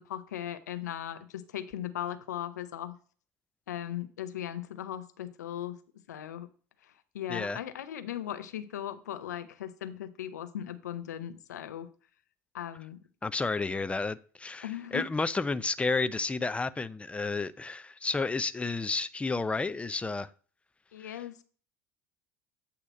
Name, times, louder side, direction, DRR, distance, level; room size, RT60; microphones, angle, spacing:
voice 1, 0.0-3.0 3.7-5.8 6.1-6.5 7.1-11.9 12.5-13.0 14.6-15.1 20.9-21.4, left 11 dB, 85° left, 10 dB, 0.7 m, -38 dB
voice 2, 7.3-7.6 13.2-20.3 21.0-21.2, left 3 dB, 15° left, 15 dB, 0.5 m, -31 dB
8.1 x 2.9 x 6.2 m, 0.42 s
hypercardioid pair, 75°, 9 cm